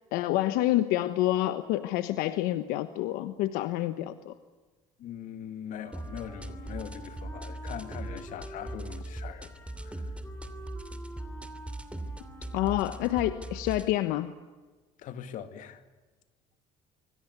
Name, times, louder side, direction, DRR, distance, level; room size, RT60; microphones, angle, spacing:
voice 1, 0.1-4.3 12.5-14.3, left 15 dB, 90° left, 1.2 m, -28 dB
voice 2, 5.0-9.5 9.8-10.1 15.0-15.8, left 9 dB, 65° left, 2.4 m, -41 dB
Wind instrument woodwind instrument, 5.7-13.9, right 1 dB, 15° left, 6.5 m, -49 dB
sound 1, 5.9-13.9, right 1 dB, 10° right, 2.8 m, -40 dB
25.5 x 25.0 x 8.2 m
cardioid pair, 110°, 14 cm